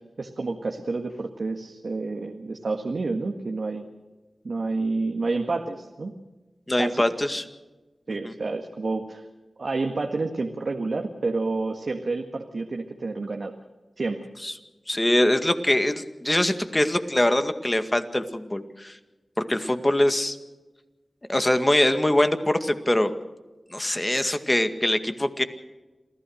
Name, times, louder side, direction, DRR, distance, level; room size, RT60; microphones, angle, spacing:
voice 1, 0.2-3.8 4.4-6.1 6.8-7.0 8.1-9.2 9.6-13.5 14.0-14.2, right 3 dB, 75° right, 3 dB, 1.7 m, -29 dB
voice 2, 6.7-7.4 8.2-8.3 14.4-14.5 14.9-19.0 19.4-20.4 21.3-23.1 23.7-25.4, left 1 dB, 25° left, 8 dB, 2.0 m, -23 dB
27.5 x 15.5 x 6.5 m, 1.1 s
cardioid pair, 45°, 0 cm